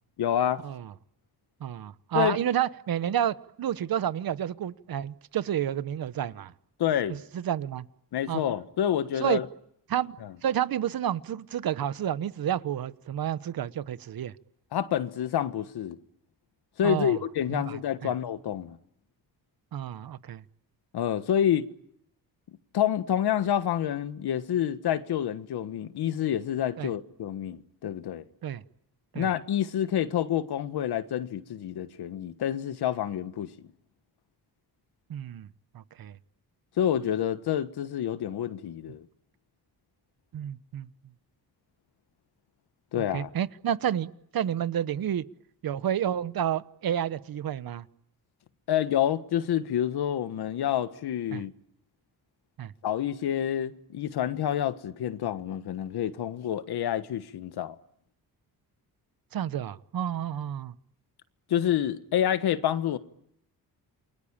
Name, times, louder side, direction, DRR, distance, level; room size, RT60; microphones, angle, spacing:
voice 1, 0.2-0.6 2.1-2.4 6.8-7.2 8.1-9.5 10.2-10.3 14.7-16.0 16.8-18.8 20.9-21.7 22.7-28.2 29.1-33.5 36.8-39.1 42.9-43.3 48.7-51.5 52.8-57.8 61.5-63.0, left 10 dB, 85° left, 1.5 m, -28 dB
voice 2, 1.6-6.5 7.1-7.9 8.3-8.4 9.2-9.4 9.9-10.2 10.4-14.3 16.8-17.2 17.5-17.8 18.0-18.1 19.7-20.4 26.8-26.9 28.4-28.6 29.1-29.3 35.1-35.5 35.7-36.2 40.3-40.9 43.0-45.2 45.6-47.8 51.3-51.4 52.6-52.7 59.3-60.7, right 10 dB, 65° right, 1.1 m, -30 dB
28.5 x 23.0 x 8.9 m
cardioid pair, 105°, 38 cm